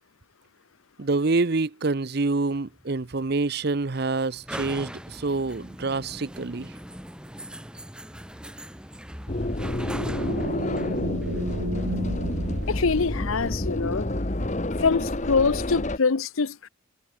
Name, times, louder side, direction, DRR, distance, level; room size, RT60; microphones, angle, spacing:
voice 1, 1.0-6.7, right 3 dB, 50° right, 0.7 m, -26 dB
sound 1, 2.5-13.2, equal, 5° right, 2.2 m, -42 dB
sound 2, 9.3-16.0, left 1 dB, 35° left, 1.3 m, -29 dB
sound 3, 9.9-13.6, right 1 dB, 80° right, 2.3 m, -33 dB
voice 2, 12.7-14.1 14.8-16.7, left 4 dB, 80° left, 0.8 m, -24 dB
head